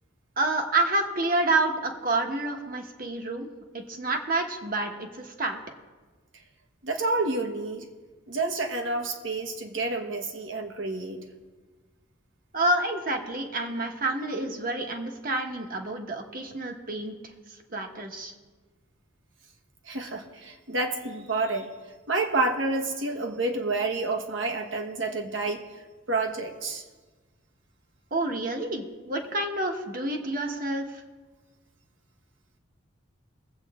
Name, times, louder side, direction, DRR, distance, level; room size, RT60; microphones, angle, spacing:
voice 1, 0.4-3.5 3.7-5.6 12.5-17.1 17.7-18.3 28.1-31.0, right 2 dB, 45° right, 3 dB, 1.4 m, -28 dB
voice 2, 6.8-7.8 8.3-11.2 19.9-21.7 22.1-25.6 26.1-26.8, right 3 dB, 70° right, 4 dB, 1.4 m, -29 dB
22.0 x 8.2 x 3.7 m, 1.3 s
head